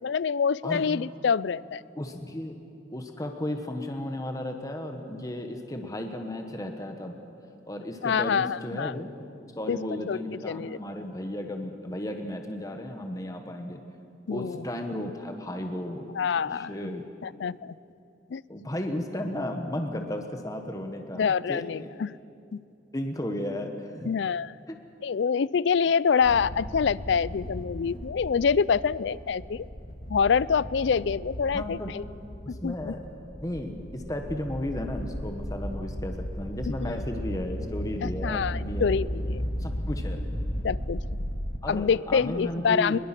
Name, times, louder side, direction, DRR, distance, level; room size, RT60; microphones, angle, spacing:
voice 1, 0.0-1.8 8.0-8.9 9.7-9.8 10.1-10.8 14.3-14.6 16.1-16.7 17.2-17.8 18.3-18.4 21.1-22.1 22.5-22.6 24.1-24.5 25.0-29.7 30.1-32.0 32.5-32.9 36.8-37.0 38.0-39.5 40.6-41.2 41.7-43.0, left 6 dB, 65° left, 20 dB, 0.4 m, -26 dB
voice 2, 2.0-2.6 2.9-7.2 7.7-9.1 9.6-13.8 14.3-16.1 16.5-17.0 18.5-21.9 22.9-24.1 24.7-24.8 31.5-31.9 32.4-33.0 33.4-38.9 39.6-40.2 41.6-43.0, left 1 dB, 20° left, 4 dB, 1.3 m, -34 dB
sound 1, 26.2-41.6, equal, 50° left, 1.9 m, -35 dB
23.0 x 21.0 x 6.0 m, 2.6 s
head